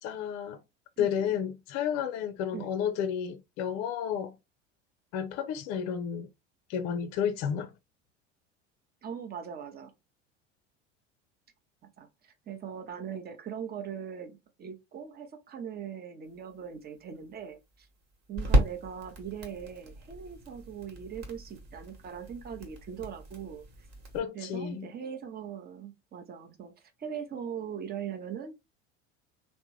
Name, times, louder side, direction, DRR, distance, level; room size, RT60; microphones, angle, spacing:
voice 1, 0.0-0.6 1.0-4.3 5.1-6.3 6.7-7.7 24.1-24.9, left 8 dB, 45° left, 0.5 m, -31 dB
voice 2, 1.0-1.3 2.5-2.7 9.0-9.9 11.8-12.1 12.5-17.9 18.3-23.6 24.3-26.7 27.0-28.5, right 8 dB, 25° right, 0.8 m, -40 dB
sound 1, 16.3-24.2, right 1 dB, 45° right, 1.4 m, -34 dB
3.4 x 2.1 x 3.0 m
figure-of-eight pair, 70°, 37 cm